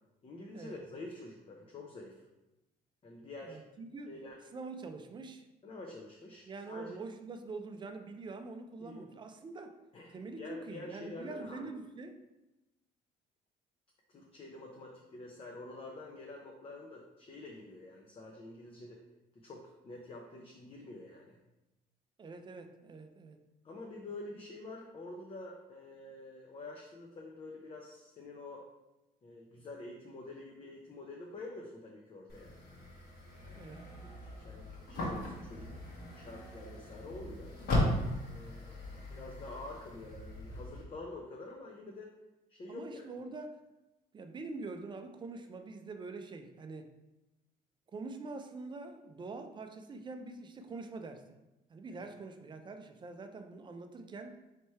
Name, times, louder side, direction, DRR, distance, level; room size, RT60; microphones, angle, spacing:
voice 1, 0.2-2.2 3.0-3.6 4.1-4.4 5.6-7.0 8.8-9.1 9.9-11.7 14.1-19.0 19.3-21.4 23.6-28.6 29.2-32.6 33.4-33.7 34.0-37.5 38.2-42.1 42.5-43.0, left 2 dB, 35° left, 0 dB, 0.6 m, -47 dB
voice 2, 3.4-4.2 4.5-5.5 6.5-9.7 10.1-12.2 22.2-23.4 33.5-33.8 42.7-43.6 44.1-46.9 47.9-51.4 51.7-54.4, right 3 dB, 25° right, 7 dB, 0.4 m, -45 dB
sound 1, 32.3-40.8, left 1 dB, 65° left, 1.4 m, -38 dB
3.3 x 3.1 x 4.3 m, 0.97 s
cardioid pair, 110°, 17 cm